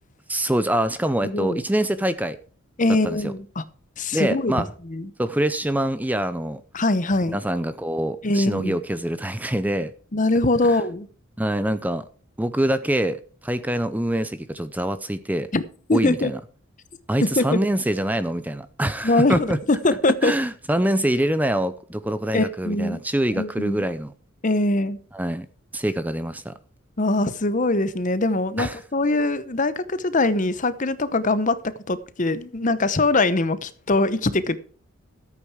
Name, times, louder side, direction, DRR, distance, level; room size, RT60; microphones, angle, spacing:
voice 1, 0.3-2.4 3.0-3.3 4.1-4.7 5.2-6.6 7.3-9.9 10.7-10.8 11.4-12.0 12.4-13.2 13.4-15.5 15.9-16.4 17.1-19.6 20.2-24.1 25.1-25.5 25.7-26.5 28.6-28.8, right 1 dB, 10° right, 0.6 m, -25 dB
voice 2, 1.2-1.6 2.8-3.6 4.0-5.1 6.7-7.4 8.2-8.8 10.1-11.1 15.5-15.6 15.9-16.3 17.2-17.6 19.0-20.3 22.3-23.0 23.3-23.8 24.4-25.0 27.0-34.6, left 2 dB, 40° left, 0.9 m, -22 dB
13.5 x 8.6 x 4.8 m
head